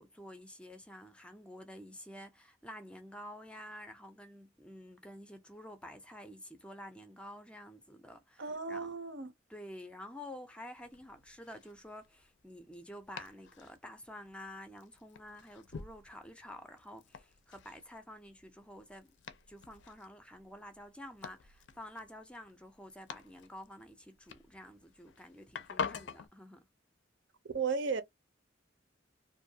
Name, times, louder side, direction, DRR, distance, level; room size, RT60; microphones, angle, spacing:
voice 1, 0.0-9.0 9.5-19.1 19.5-26.7, left 1 dB, 5° left, 0.4 m, -50 dB
voice 2, 8.4-9.3 27.5-28.0, right 5 dB, 75° right, 0.6 m, -34 dB
Domestic sounds home sounds, 10.7-26.3, left 6 dB, 70° left, 0.4 m, -47 dB
2.6 x 2.2 x 2.7 m
head